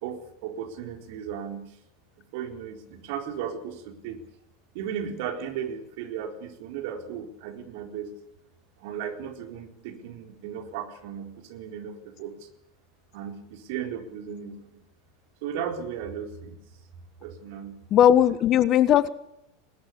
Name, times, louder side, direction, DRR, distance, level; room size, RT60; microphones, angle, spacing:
voice 1, 0.0-1.8 2.3-4.2 4.7-8.1 8.8-12.5 13.1-14.8 15.4-16.6 17.2-17.7, right 8 dB, 55° right, 5 dB, 4.2 m, -36 dB
voice 2, 17.9-19.1, left 10 dB, 40° left, 16 dB, 1.4 m, -18 dB
21.0 x 20.0 x 8.6 m, 0.81 s
figure-of-eight pair, 85°, 0 cm